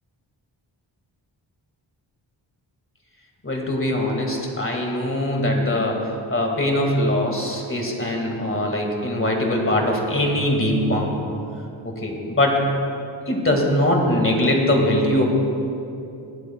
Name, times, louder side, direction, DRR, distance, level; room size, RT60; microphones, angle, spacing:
voice 1, 3.4-11.2 11.8-12.6 13.3-15.2, left 1 dB, 25° left, 0 dB, 1.9 m, -22 dB
23.5 x 8.0 x 2.3 m, 2.7 s
wide cardioid pair, 65°, 46 cm